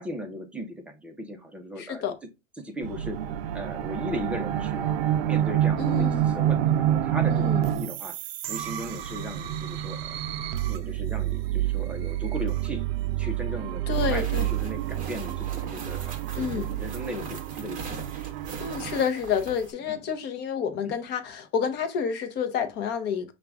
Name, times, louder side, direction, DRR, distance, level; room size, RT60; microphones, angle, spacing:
voice 1, 0.0-2.0 2.6-3.2 3.5-4.9 5.2-8.2 8.5-10.1 10.7-12.8 13.2-18.0 19.9-20.0 20.8-20.9, equal, 5° right, 0.6 m, -37 dB
voice 2, 1.8-2.1 5.8-6.3 7.3-7.6 13.9-14.5 16.3-16.7 18.6-23.3, left 7 dB, 25° left, 0.8 m, -29 dB
sound 1, 2.8-19.0, right 12 dB, 50° right, 0.5 m, -28 dB
sound 2, 13.9-19.7, right 3 dB, 20° right, 1.0 m, -41 dB
5.7 x 2.4 x 3.4 m
hypercardioid pair, 130°, 39 cm